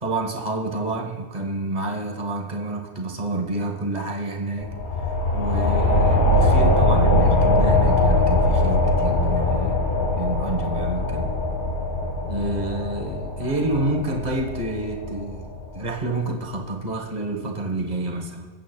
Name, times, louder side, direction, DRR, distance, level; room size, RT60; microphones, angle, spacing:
voice 1, 0.0-4.7 5.3-9.9 10.1-11.3 12.3-18.5, right 2 dB, 40° right, 3 dB, 1.3 m, -28 dB
sound 1, 4.6-15.8, left 2 dB, 80° left, 2.1 m, -21 dB
22.5 x 8.2 x 2.3 m, 1.5 s
omnidirectional pair, 1.2 m